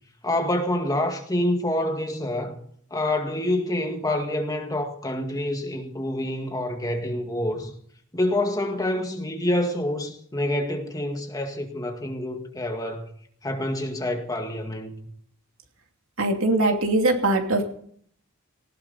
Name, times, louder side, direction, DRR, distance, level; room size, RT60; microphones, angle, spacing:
voice 1, 0.2-2.6 2.9-7.7 8.1-13.1 13.4-15.1, left 1 dB, 15° left, 2.0 m, -27 dB
voice 2, 16.2-17.7, right 2 dB, 75° right, 2.7 m, -21 dB
19.0 x 16.5 x 4.2 m
head